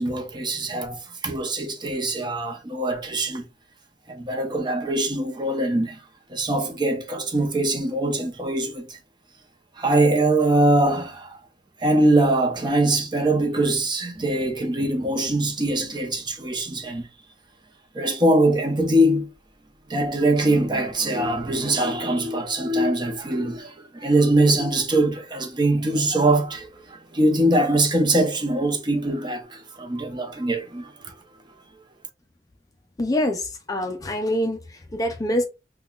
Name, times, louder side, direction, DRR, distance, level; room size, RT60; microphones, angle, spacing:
voice 1, 0.0-3.5 4.1-6.0 6.3-9.0 9.8-11.4 11.8-17.1 17.9-19.3 19.9-31.1, right 1 dB, 25° right, 0.7 m, -22 dB
voice 2, 33.0-35.5, left 1 dB, 20° left, 0.4 m, -25 dB
5.5 x 2.2 x 2.3 m
head